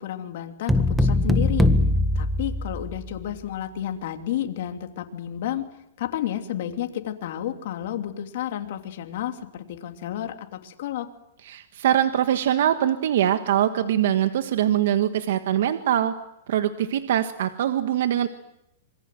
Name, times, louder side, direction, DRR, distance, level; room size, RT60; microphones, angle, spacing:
voice 1, 0.0-1.7 2.1-5.6 6.0-11.1, left 11 dB, 60° left, 5 dB, 3.0 m, -31 dB
sound 1, 0.7-3.2, left 2 dB, 5° right, 1.7 m, -21 dB
voice 2, 11.5-16.1 16.5-18.3, right 11 dB, 70° right, 9 dB, 1.5 m, -23 dB
26.5 x 23.5 x 7.7 m, 0.82 s
hypercardioid pair, 140°, 0 cm